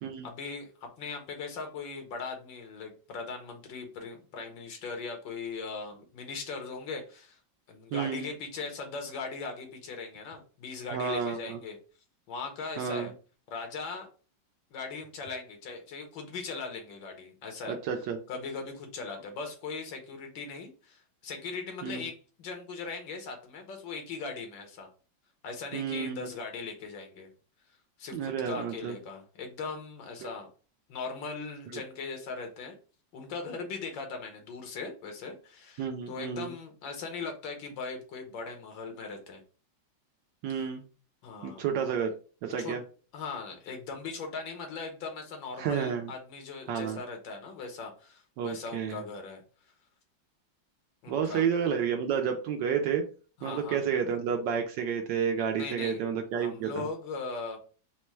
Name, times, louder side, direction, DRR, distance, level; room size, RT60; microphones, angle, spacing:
voice 1, 0.2-7.4 7.7-11.8 12.3-13.1 13.5-14.1 14.7-17.8 18.3-24.9 25.4-27.3 28.0-30.5 30.9-32.7 33.1-39.4 40.5-40.7 41.2-41.7 42.6-42.8 43.1-49.4 51.0-51.4 53.4-53.8 55.5-56.0 56.3-57.6, left 4 dB, 90° left, 4 dB, 1.7 m, -39 dB
voice 2, 7.9-8.3 10.9-11.6 12.8-13.1 17.7-18.2 21.8-22.1 25.7-26.3 28.1-29.0 30.2-30.3 31.7-31.8 35.8-36.5 40.4-40.8 41.4-42.1 42.4-42.8 45.6-46.1 46.7-47.0 48.4-49.0 51.1-53.0 53.4-56.9, right 7 dB, 75° right, 4 dB, 1.2 m, -30 dB
4.2 x 2.1 x 4.5 m, 0.37 s
omnidirectional pair, 2.0 m